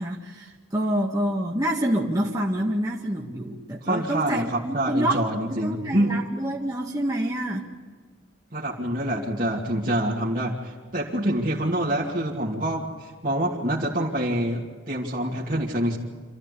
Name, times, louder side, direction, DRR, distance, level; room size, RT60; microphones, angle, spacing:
voice 1, 0.0-5.2 5.5-7.7, right 1 dB, 20° right, -3 dB, 1.8 m, -27 dB
voice 2, 3.8-6.1 8.5-16.0, right 1 dB, 45° right, -5 dB, 2.7 m, -26 dB
27.0 x 15.0 x 8.4 m, 1.5 s
head